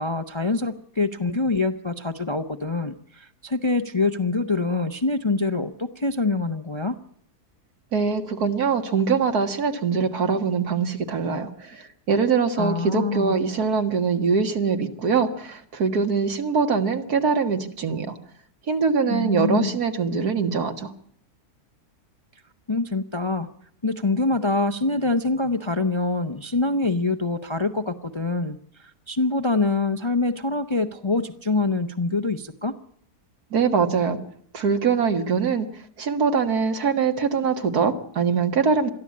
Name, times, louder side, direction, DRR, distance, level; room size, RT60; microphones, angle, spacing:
voice 1, 0.0-6.9 12.6-13.3 19.1-19.8 22.7-23.5 23.8-32.7, left 3 dB, 25° left, 8 dB, 0.6 m, -25 dB
voice 2, 7.9-18.2 18.7-20.9 33.5-34.2 34.5-35.7 36.0-38.9, right 5 dB, 75° right, 7 dB, 2.2 m, -23 dB
22.5 x 14.0 x 8.5 m, 0.64 s
omnidirectional pair, 1.7 m